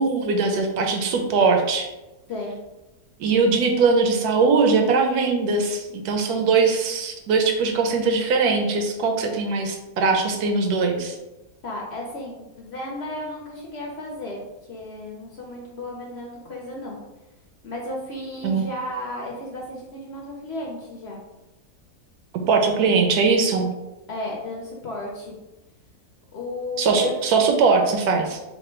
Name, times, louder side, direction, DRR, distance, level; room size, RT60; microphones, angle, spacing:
voice 1, 0.0-1.9 3.2-11.2 18.4-18.7 22.5-23.7 26.8-28.4, right 4 dB, 80° right, 4 dB, 1.1 m, -21 dB
voice 2, 11.6-14.4 14.7-17.0 17.6-21.2 24.1-25.3 26.3-27.1, left 1 dB, 60° left, -2 dB, 0.7 m, -33 dB
3.2 x 2.2 x 4.3 m, 1.0 s
omnidirectional pair, 1.6 m